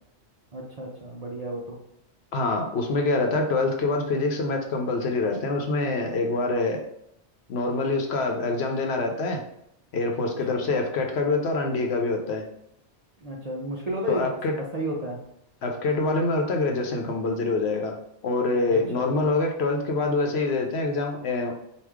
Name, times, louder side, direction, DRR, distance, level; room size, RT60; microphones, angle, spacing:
voice 1, 0.5-1.8 8.2-8.3 10.2-10.6 13.2-14.2 14.7-15.2 18.7-19.1, equal, 40° right, -2 dB, 0.6 m, -32 dB
voice 2, 2.3-6.8 7.5-9.4 9.9-12.4 14.1-14.5 15.6-18.0 18.2-21.5, left 3 dB, 70° left, 2 dB, 0.9 m, -25 dB
4.6 x 2.5 x 3.5 m, 0.77 s
omnidirectional pair, 1.2 m